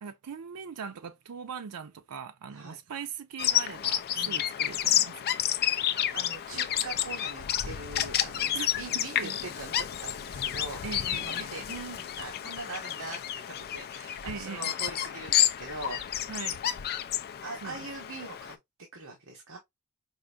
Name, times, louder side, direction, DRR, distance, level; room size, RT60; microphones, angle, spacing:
voice 1, 0.0-5.3 5.7-6.0 8.5-9.4 10.8-11.5 14.3-14.7 16.3-16.6 17.6-17.8, right 6 dB, 85° right, 0.5 m, -41 dB
Bird vocalization bird call bird song, 3.4-18.5, left 11 dB, 45° left, 0.3 m, -30 dB
voice 2, 6.1-13.2 13.5-16.0 17.4-18.6 18.9-19.6, right 3 dB, 65° right, 1.0 m, -42 dB
4.8 x 2.5 x 2.3 m
head